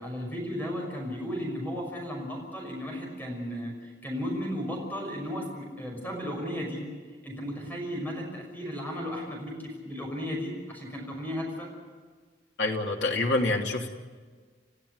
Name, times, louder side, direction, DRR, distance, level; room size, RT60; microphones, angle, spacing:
voice 1, 0.0-6.8 7.2-11.7, equal, 10° left, 0 dB, 6.2 m, -35 dB
voice 2, 12.6-13.9, left 2 dB, 85° left, 1 dB, 2.8 m, -26 dB
29.0 x 15.0 x 8.1 m, 1.5 s
head